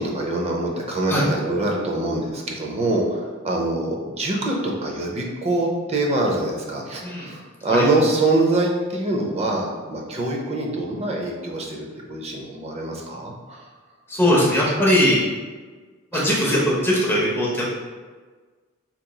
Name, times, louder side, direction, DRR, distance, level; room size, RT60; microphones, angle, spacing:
voice 1, 0.0-13.6 16.1-16.2, right 2 dB, 30° right, -1 dB, 0.6 m, -24 dB
voice 2, 7.0-7.3 7.7-7.9 14.1-15.2 16.1-17.7, equal, 10° left, -5 dB, 0.6 m, -20 dB
5.1 x 2.9 x 2.2 m, 1.4 s
head